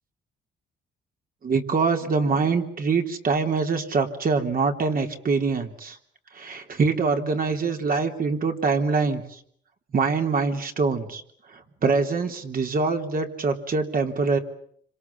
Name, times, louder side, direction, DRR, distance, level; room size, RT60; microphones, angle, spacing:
voice 1, 1.4-6.0 6.3-9.4 9.9-11.2 11.8-14.4, right 4 dB, 45° right, 4 dB, 3.6 m, -24 dB
27.0 x 26.5 x 7.2 m, 0.65 s
cardioid pair, 90°, 20 cm